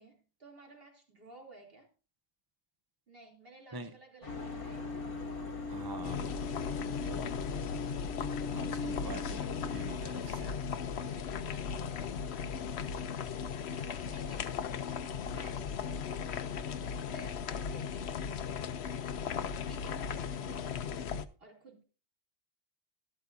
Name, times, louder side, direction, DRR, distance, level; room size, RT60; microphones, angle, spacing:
voice 1, 0.0-1.9 3.1-5.0 10.8-13.3 14.0-14.6 15.2-15.8 17.0-18.0 19.6-21.8, right 2 dB, 50° right, 3.2 m, -55 dB
sound 1, 4.2-10.2, left 3 dB, 50° left, 1.5 m, -51 dB
sound 2, 4.3-10.0, left 3 dB, 90° left, 1.1 m, -40 dB
voice 2, 5.7-6.5 7.0-7.4 8.5-10.6 13.7-14.1, right 2 dB, 20° right, 0.7 m, -46 dB
sound 3, 6.0-21.2, left 7 dB, 65° left, 1.0 m, -37 dB
13.0 x 12.5 x 2.6 m
omnidirectional pair, 1.2 m